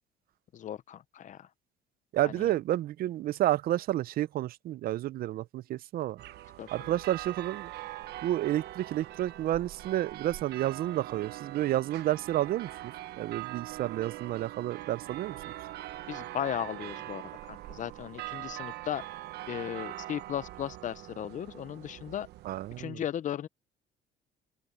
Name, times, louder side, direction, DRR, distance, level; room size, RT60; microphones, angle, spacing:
voice 1, 0.5-1.5 2.2-2.5 6.6-7.0 16.1-19.1 19.5-22.3 22.8-23.5, left 10 dB, 50° left, 0.7 m, -36 dB
voice 2, 2.1-6.2 6.7-7.7 8.2-15.4 22.4-23.0, right 14 dB, 60° right, 0.5 m, -30 dB
sound 1, 6.2-22.8, right 15 dB, 75° right, 1.1 m, -42 dB
open air
cardioid pair, 110°, 17 cm